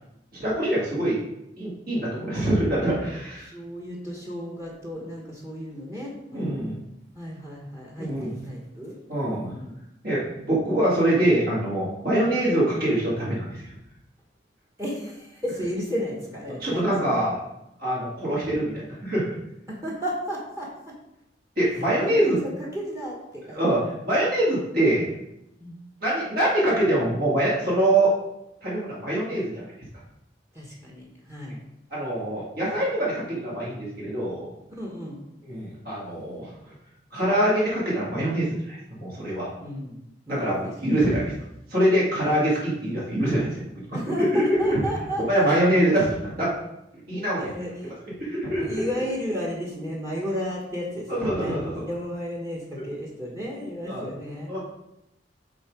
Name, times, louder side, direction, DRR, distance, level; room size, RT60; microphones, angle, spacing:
voice 1, 0.4-1.2 1.6-3.5 6.3-6.8 8.0-8.3 9.1-9.5 10.0-13.5 16.5-17.4 17.8-19.3 21.6-22.4 23.5-23.8 24.1-25.1 26.0-28.1 28.6-29.6 31.9-34.5 35.4-36.5 37.1-39.5 40.3-41.2 41.7-43.6 44.2-44.8 45.3-46.5 47.1-47.4 47.8-47.9 48.2-48.8 51.1-51.8 53.9-54.0 54.5-54.6, right 1 dB, 55° right, -7 dB, 2.3 m, -24 dB
voice 2, 3.4-6.6 7.1-8.9 9.4-9.7 14.8-17.2 19.7-21.0 21.7-23.6 25.6-25.8 30.5-31.6 34.7-35.2 39.6-40.0 40.3-41.1 42.2-42.4 43.9-45.5 47.0-47.9 48.6-54.5, equal, 15° right, -2 dB, 1.1 m, -33 dB
6.4 x 3.8 x 4.9 m, 0.85 s
head